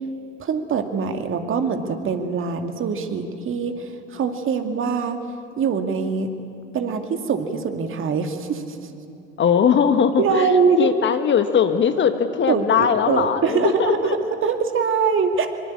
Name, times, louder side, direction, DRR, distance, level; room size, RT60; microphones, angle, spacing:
voice 1, 0.4-5.2 5.6-6.3 6.7-8.8 10.2-10.9 12.5-15.5, right 5 dB, 35° right, 6 dB, 2.4 m, -23 dB
voice 2, 9.4-10.5 10.8-14.2, left 7 dB, 30° left, 9 dB, 1.4 m, -20 dB
25.0 x 24.5 x 8.5 m, 2.6 s
figure-of-eight pair, 65°, 37 cm